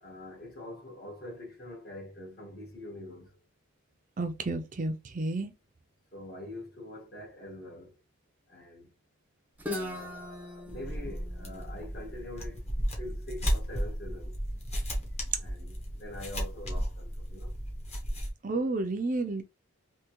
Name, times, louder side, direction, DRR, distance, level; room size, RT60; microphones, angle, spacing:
voice 1, 0.0-3.4 6.1-8.0 8.5-8.9 9.6-14.4 15.4-17.5, left 1 dB, 45° left, 1.6 m, -44 dB
voice 2, 4.2-5.5 18.4-19.4, right 2 dB, 35° right, 0.5 m, -31 dB
Guitar, 9.6-13.4, left 1 dB, 10° right, 0.7 m, -41 dB
sound 1, 10.7-18.3, equal, 30° left, 1.1 m, -34 dB
3.5 x 2.9 x 3.0 m
head